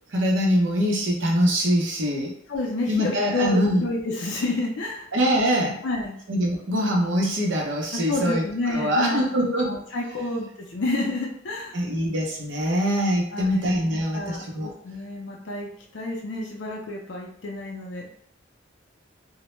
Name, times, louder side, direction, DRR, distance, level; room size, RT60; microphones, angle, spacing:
voice 1, 0.1-2.3 2.9-3.8 5.1-5.8 6.3-9.7 10.2-10.4 11.7-14.7, equal, 65° right, -1 dB, 0.6 m, -23 dB
voice 2, 2.5-5.1 5.8-6.2 7.9-9.3 9.6-11.8 13.3-13.6 13.9-18.1, left 2 dB, 60° left, -1 dB, 0.5 m, -30 dB
2.1 x 2.0 x 3.0 m, 0.69 s
head